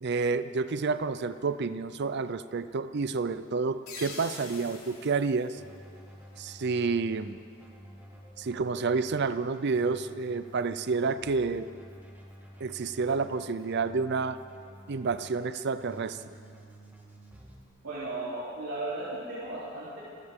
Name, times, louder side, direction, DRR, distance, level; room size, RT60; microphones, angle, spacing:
voice 1, 0.0-5.6 6.4-7.4 8.4-11.7 12.6-14.4 14.9-16.4, right 4 dB, 55° right, 13 dB, 0.5 m, -29 dB
sound 1, 3.9-6.4, left 4 dB, 90° left, 3.7 m, -46 dB
Keyboard (musical), 5.6-17.6, right 1 dB, 10° right, 1.9 m, -51 dB
voice 2, 17.8-20.0, right 2 dB, 70° right, -10 dB, 3.4 m, -35 dB
26.5 x 15.0 x 3.7 m, 2.4 s
head